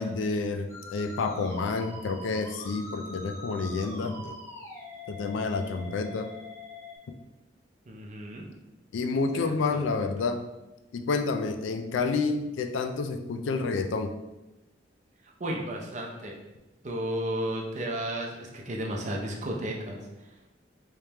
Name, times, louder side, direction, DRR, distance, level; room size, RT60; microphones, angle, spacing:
voice 1, 0.0-4.4 5.1-6.3 8.9-10.4 10.9-14.1, left 4 dB, 90° left, 7 dB, 0.4 m, -29 dB
Musical instrument, 0.7-7.0, left 1 dB, 15° left, 0.7 m, -44 dB
voice 2, 7.9-8.5 9.3-10.1 15.4-16.4 16.8-20.5, right 1 dB, 40° right, -1 dB, 0.5 m, -34 dB
3.4 x 3.2 x 2.8 m, 1.0 s
head